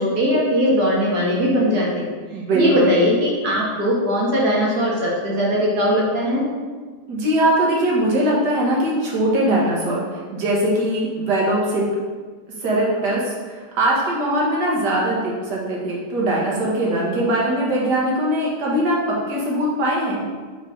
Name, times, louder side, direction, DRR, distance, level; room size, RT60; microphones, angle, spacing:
voice 1, 0.0-2.1 2.5-6.4, equal, 65° right, -4 dB, 1.9 m, -20 dB
voice 2, 2.3-3.0 7.1-11.8 12.6-19.0 19.3-20.2, right 1 dB, 80° right, -4 dB, 1.9 m, -21 dB
5.3 x 4.9 x 3.6 m, 1.5 s
omnidirectional pair, 1.8 m